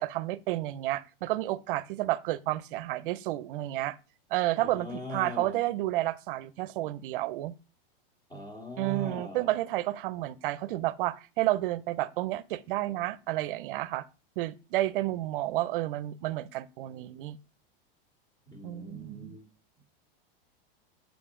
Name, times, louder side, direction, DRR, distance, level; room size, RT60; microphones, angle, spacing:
voice 1, 0.0-4.0 4.3-7.5 8.8-14.0 14.4-17.4 18.6-19.4, right 16 dB, 65° right, 0.6 m, -31 dB
voice 2, 4.6-5.6 8.3-9.5 18.5-19.5, right 1 dB, 15° left, 1.9 m, -40 dB
6.9 x 5.2 x 3.7 m
supercardioid pair, 145°, 29 cm